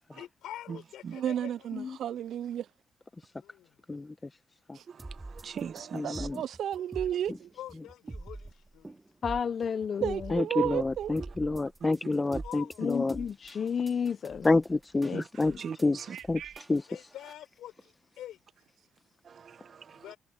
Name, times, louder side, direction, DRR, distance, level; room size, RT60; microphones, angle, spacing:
voice 1, 0.1-1.7 3.4-3.8 7.5-9.0 12.4-13.0 16.9-18.4 19.9-20.2, left 13 dB, 85° left, 6.0 m, -46 dB
voice 2, 1.1-2.6 5.6-7.5 10.0-11.1 16.1-16.5, right 10 dB, 70° right, 0.4 m, -33 dB
voice 3, 4.9-6.3 11.2-11.3 11.8-11.9 12.3-12.4 15.1-15.2 15.6-16.2 19.2-20.0, right 6 dB, 50° right, 0.9 m, -41 dB
sound 1, 5.0-17.3, right 2 dB, 15° right, 2.5 m, -45 dB
voice 4, 5.9-6.4 7.3-7.4 10.3-13.2 14.4-15.1 15.4-15.5 15.8-16.0 16.3-16.4 16.7-16.8, left 3 dB, 20° left, 1.0 m, -28 dB
voice 5, 9.2-10.3 12.8-14.5 15.0-15.2 15.5-15.6, left 7 dB, 50° left, 0.8 m, -32 dB
cardioid pair, 90°, 0 cm